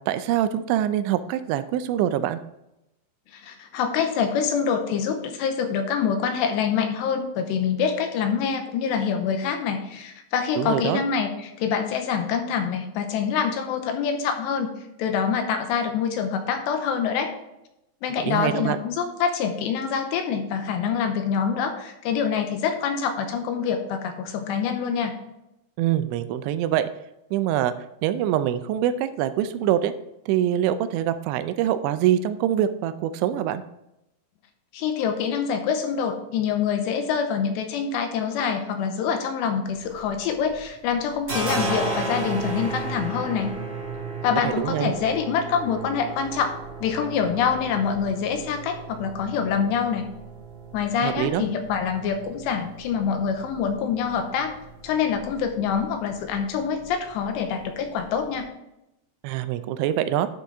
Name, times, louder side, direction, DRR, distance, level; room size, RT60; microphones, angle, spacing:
voice 1, 0.1-2.4 10.6-11.0 18.2-18.8 25.8-26.9 27.3-27.7 28.0-29.9 30.3-33.6 44.4-44.9 51.0-51.4 59.2-60.3, right 11 dB, 85° right, 11 dB, 2.9 m, -24 dB
voice 2, 3.3-14.7 15.0-17.3 18.0-25.1 34.7-43.5 44.2-46.5 46.8-50.1 50.7-54.5 54.8-58.5, left 7 dB, 80° left, 6 dB, 2.9 m, -25 dB
sound 1, 39.7-40.6 40.9-58.4, right 3 dB, 45° right, 0.9 m, -35 dB
11.5 x 6.4 x 3.5 m, 0.87 s
omnidirectional pair, 5.3 m